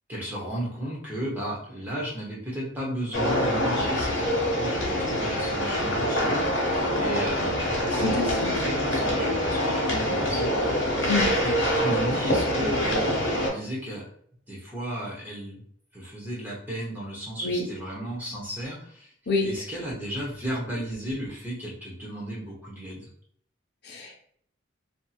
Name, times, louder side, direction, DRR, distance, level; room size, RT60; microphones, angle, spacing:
voice 1, 0.1-10.7 11.4-14.0 14.5-15.6 15.9-19.1 19.4-23.1, right 1 dB, 10° right, -5 dB, 0.7 m, -34 dB
sound 1, 3.1-13.5, equal, 80° left, 1.0 m, -25 dB
voice 2, 8.0-8.5 11.0-11.4 17.4-17.6 19.3-19.5 23.8-24.2, left 3 dB, 55° left, 0 dB, 0.7 m, -27 dB
2.7 x 2.6 x 2.3 m, 0.62 s
head